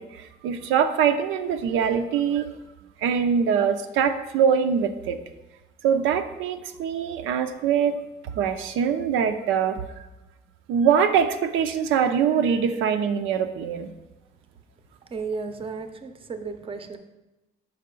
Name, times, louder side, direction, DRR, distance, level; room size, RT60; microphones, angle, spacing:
voice 1, 0.0-2.5 3.0-5.2 5.8-8.0 8.3-9.8 10.7-13.9, right 7 dB, 90° right, 7 dB, 0.4 m, -23 dB
voice 2, 15.1-17.0, right 4 dB, 25° right, 7 dB, 0.6 m, -33 dB
5.7 x 4.6 x 3.7 m, 1.0 s
cardioid pair, 90°, 20 cm